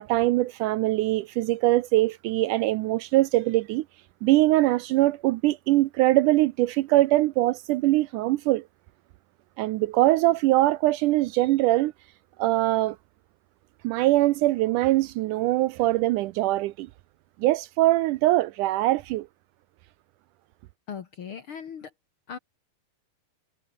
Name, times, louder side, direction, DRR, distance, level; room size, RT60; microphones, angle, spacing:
voice 1, 0.0-3.9 4.2-8.6 9.6-11.9 12.4-13.0 13.8-16.9 17.4-19.3, right 17 dB, 80° right, 1.9 m, -22 dB
voice 2, 20.9-21.9 22.3-22.4, left 7 dB, 55° left, 1.5 m, -38 dB
omnidirectional pair, 4.1 m